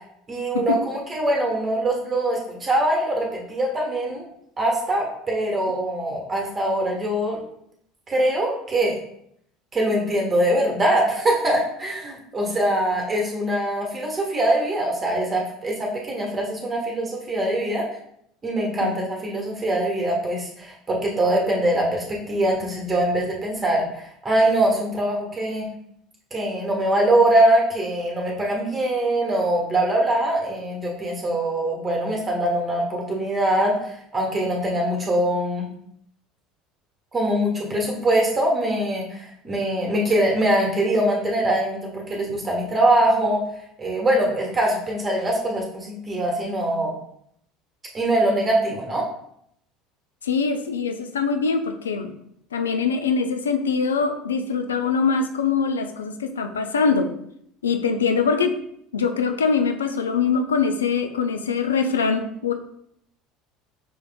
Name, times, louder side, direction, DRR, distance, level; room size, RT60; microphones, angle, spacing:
voice 1, 0.3-4.3 4.6-7.4 8.1-8.9 9.7-17.9 18.4-25.7 26.3-35.7 37.1-43.4 43.8-46.9 47.9-49.1, right 1 dB, 25° right, -1 dB, 1.2 m, -23 dB
voice 2, 50.2-52.1 52.5-57.1 57.6-58.6 58.9-62.5, left 5 dB, 80° left, 6 dB, 0.4 m, -23 dB
6.1 x 3.4 x 2.2 m, 0.72 s
figure-of-eight pair, 65°, 0 cm